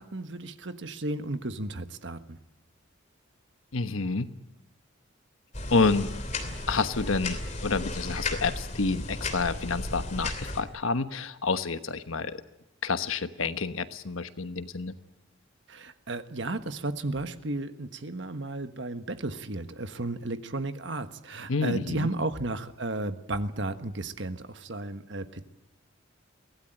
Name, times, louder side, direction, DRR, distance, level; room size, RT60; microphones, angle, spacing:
voice 1, 0.0-2.4 15.7-25.4, right 2 dB, 65° right, 10 dB, 1.3 m, -34 dB
voice 2, 3.7-4.3 5.7-6.1 6.7-12.4 12.8-14.9 21.5-22.1, left 4 dB, 85° left, 11 dB, 1.2 m, -28 dB
sound 1, 5.5-10.6, left 2 dB, 35° left, 3.0 m, -34 dB
23.5 x 16.5 x 9.1 m, 0.93 s
head